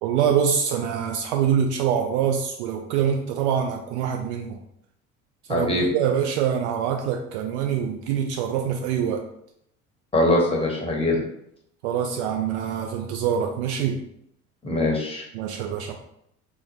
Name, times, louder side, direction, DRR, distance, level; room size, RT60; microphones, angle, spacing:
voice 1, 0.0-4.6 5.5-9.2 11.8-14.0 15.3-15.9, right 8 dB, 50° right, 3 dB, 0.4 m, -25 dB
voice 2, 5.5-5.9 10.1-11.2 14.6-15.2, left 1 dB, 15° left, -1 dB, 0.8 m, -22 dB
3.8 x 2.0 x 3.1 m, 0.75 s
figure-of-eight pair, 65°, 44 cm